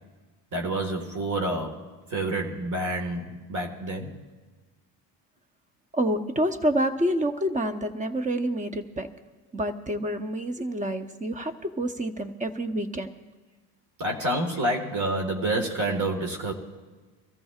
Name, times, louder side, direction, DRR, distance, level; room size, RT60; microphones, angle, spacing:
voice 1, 0.5-4.2 14.0-16.5, right 1 dB, 45° right, 2 dB, 1.9 m, -28 dB
voice 2, 5.9-9.1 9.5-13.1, right 1 dB, 20° right, 9 dB, 0.9 m, -28 dB
25.0 x 14.0 x 2.5 m, 1.3 s
supercardioid pair, 90°, 42 cm